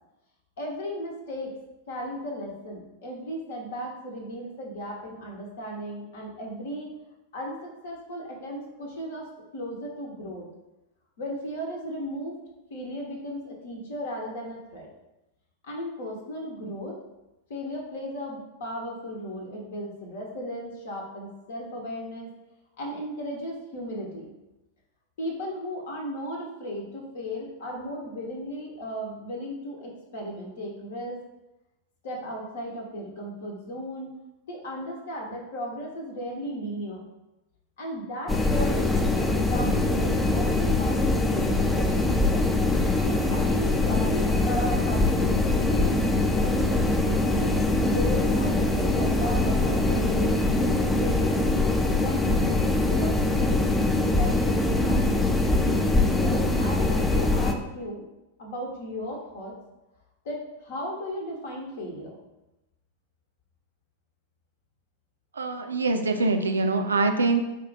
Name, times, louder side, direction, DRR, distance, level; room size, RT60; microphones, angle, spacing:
voice 1, 0.6-1.5 1.9-6.9 7.3-9.3 9.5-10.4 11.2-12.4 12.7-14.9 15.6-17.0 17.5-22.3 22.8-24.3 25.2-31.2 32.0-34.1 34.5-37.0 37.8-42.5 43.0-47.5 47.9-51.4 51.9-55.1 56.2-58.0 58.4-59.5 60.2-62.2, equal, 60° left, -1 dB, 0.8 m, -35 dB
sound 1, 38.3-57.5, left 2 dB, 10° left, 0.4 m, -23 dB
voice 2, 65.3-67.4, right 3 dB, 75° right, 6 dB, 0.4 m, -24 dB
4.4 x 2.4 x 3.8 m, 0.97 s
figure-of-eight pair, 90°, 0 cm